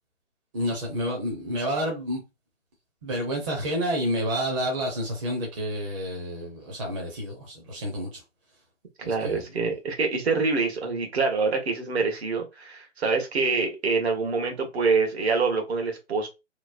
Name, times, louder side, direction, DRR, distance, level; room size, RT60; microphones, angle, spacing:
voice 1, 0.5-2.2 3.0-8.2 9.0-9.7, equal, 25° right, 0.6 m, -29 dB
voice 2, 9.0-16.3, right 4 dB, 55° right, 1.1 m, -25 dB
3.0 x 2.0 x 2.4 m
figure-of-eight pair, 145°, 37 cm